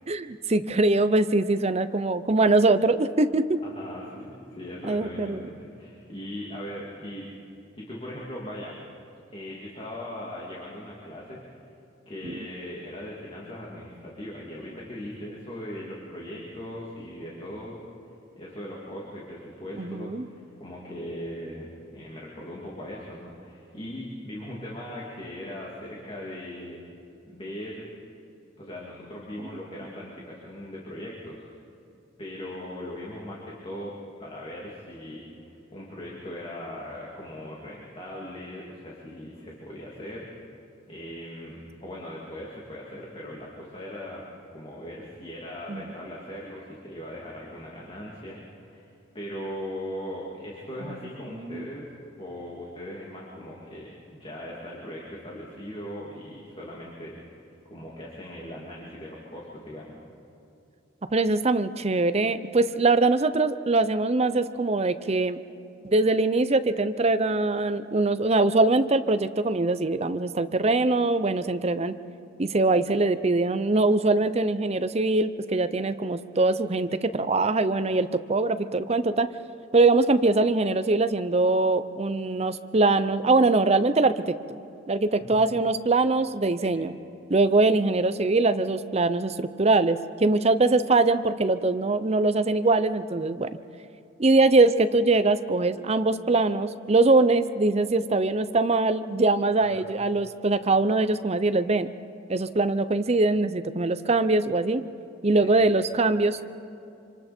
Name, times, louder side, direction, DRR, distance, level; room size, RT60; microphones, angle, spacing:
voice 1, 0.1-3.6 4.9-5.4 12.2-12.4 19.8-20.2 45.7-45.9 50.8-51.0 51.3-51.7 61.1-65.4 65.8-71.9 72.4-79.3 79.7-84.4 84.9-86.9 87.3-93.5 94.2-101.9 102.3-104.8 105.2-106.4, right 2 dB, 35° right, 12 dB, 0.7 m, -22 dB
voice 2, 3.6-7.3 7.7-8.8 9.3-11.4 12.1-17.8 18.4-26.8 27.3-27.8 28.6-31.5 32.2-33.9 34.2-40.3 40.9-44.2 44.5-48.9 49.1-51.9 52.2-60.0 85.2-85.4 86.6-86.7 99.6-99.9 105.3-105.7, left 1 dB, 30° left, -4 dB, 2.8 m, -39 dB
26.5 x 26.0 x 4.5 m, 2.7 s
head